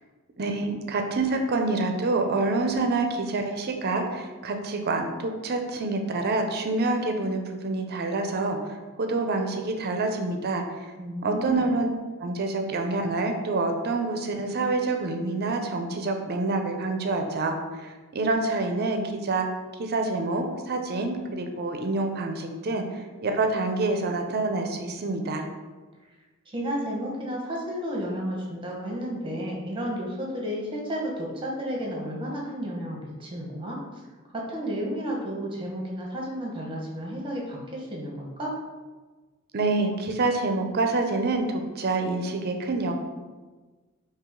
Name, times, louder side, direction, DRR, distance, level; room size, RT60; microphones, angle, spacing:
voice 1, 0.4-8.6 9.0-10.6 11.2-11.9 12.2-19.5 19.8-22.8 23.2-25.5 39.5-42.9, right 3 dB, 50° right, 5 dB, 0.5 m, -27 dB
voice 2, 11.0-11.7 26.5-33.8 34.3-38.5, equal, 25° right, -2 dB, 1.0 m, -32 dB
4.9 x 2.8 x 3.7 m, 1.3 s
head